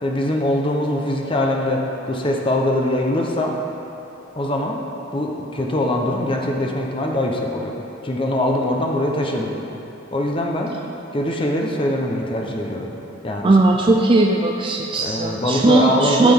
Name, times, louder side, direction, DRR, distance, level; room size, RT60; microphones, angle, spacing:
voice 1, 0.0-3.6 4.4-4.8 5.1-7.7 8.0-9.5 10.1-10.7 11.1-12.9 13.2-13.5 15.0-16.3, left 1 dB, 25° left, 0 dB, 0.8 m, -22 dB
voice 2, 13.4-16.3, right 2 dB, 25° right, 1 dB, 0.4 m, -17 dB
14.5 x 6.0 x 3.7 m, 3.0 s
head